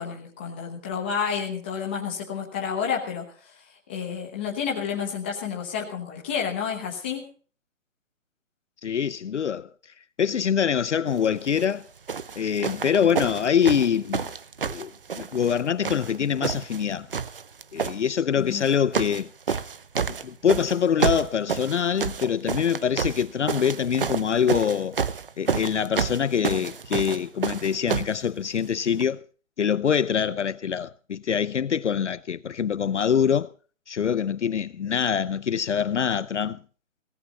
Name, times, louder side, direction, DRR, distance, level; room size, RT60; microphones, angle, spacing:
voice 1, 0.0-3.5 3.9-7.2 18.4-18.7, left 7 dB, 10° left, 1.1 m, -30 dB
voice 2, 8.8-9.7 10.2-11.9 12.4-14.3 14.7-17.1 17.7-19.6 20.1-25.0 25.4-29.2 29.6-33.5 33.9-36.6, left 7 dB, 65° left, 0.7 m, -24 dB
sound 1, 11.4-11.7 12.1-15.6 15.8-16.8 17.1-18.0 18.6-19.2 19.5-28.2 29.0-29.1, right 6 dB, 45° right, 0.7 m, -29 dB
17.5 x 15.5 x 4.1 m
hypercardioid pair, 175°, 38 cm